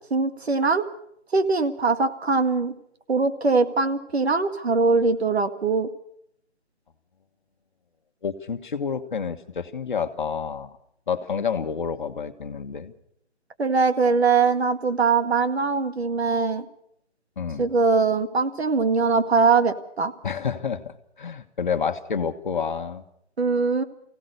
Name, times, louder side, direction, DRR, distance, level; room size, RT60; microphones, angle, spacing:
voice 1, 0.1-0.9 1.3-2.7 3.1-5.9 13.6-16.7 17.6-20.1 23.4-23.8, right 4 dB, 65° right, 8 dB, 2.0 m, -22 dB
voice 2, 8.2-10.8 11.1-12.9 17.4-17.7 20.2-23.0, left 6 dB, 45° left, 8 dB, 1.5 m, -29 dB
24.0 x 17.0 x 6.7 m, 0.72 s
figure-of-eight pair, 165°, 34 cm